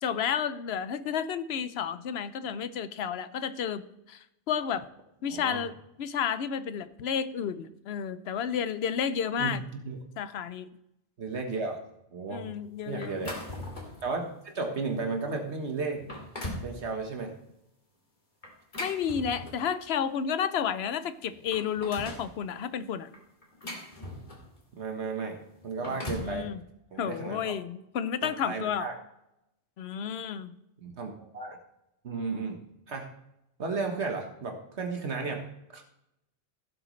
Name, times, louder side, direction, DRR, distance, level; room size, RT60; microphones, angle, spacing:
voice 1, 0.0-3.8 4.1-4.9 5.2-5.7 6.0-9.6 10.2-10.7 12.3-13.2 18.8-23.1 26.0-26.6 27.0-28.9 29.8-30.5, left 8 dB, 65° left, 13 dB, 0.9 m, -31 dB
voice 2, 5.3-5.6 9.4-10.0 11.2-11.8 12.1-12.5 12.9-13.3 14.0-16.0 16.6-17.3 24.8-26.5 26.9-27.5 28.2-28.9 30.8-31.6 32.0-32.6 32.9-33.1 33.6-35.4 35.7-35.8, right 4 dB, 75° right, 3 dB, 1.6 m, -34 dB
sound 1, 13.0-14.0 14.6-14.8 15.4-15.5 15.9-16.7 18.4-19.8 20.8-20.9 21.2-22.3 23.1-24.6 25.6-26.4, left 1 dB, 45° left, 2.4 m, -39 dB
16.0 x 7.8 x 3.2 m, 0.84 s
omnidirectional pair, 1.2 m